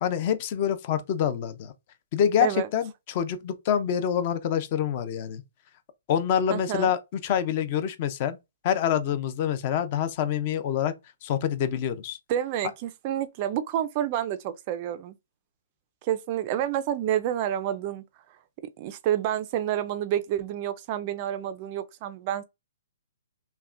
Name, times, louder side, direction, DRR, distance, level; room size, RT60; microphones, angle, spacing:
voice 1, 0.0-1.7 2.1-5.4 6.1-8.4 8.6-10.9 11.2-12.2, left 9 dB, 30° left, 0.5 m, -26 dB
voice 2, 6.5-6.9 12.3-15.2 16.0-18.0 18.8-22.4, right 11 dB, 30° right, 0.3 m, -29 dB
5.6 x 2.1 x 2.5 m
hypercardioid pair, 165°, 0 cm